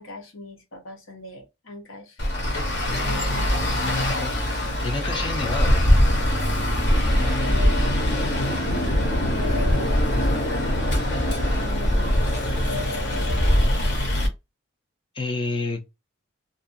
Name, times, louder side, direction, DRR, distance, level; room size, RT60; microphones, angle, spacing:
voice 1, 0.0-2.2 3.0-3.6 6.9-8.3 9.3-10.0 11.2-12.3 12.6-14.1, left 2 dB, 85° left, 0.9 m, -38 dB
Traffic noise roadway noise, 2.2-14.3, left 1 dB, 55° left, 0.8 m, -22 dB
voice 2, 4.8-6.0 15.1-15.9, left 3 dB, 25° left, 0.4 m, -29 dB
2.5 x 2.3 x 2.5 m
head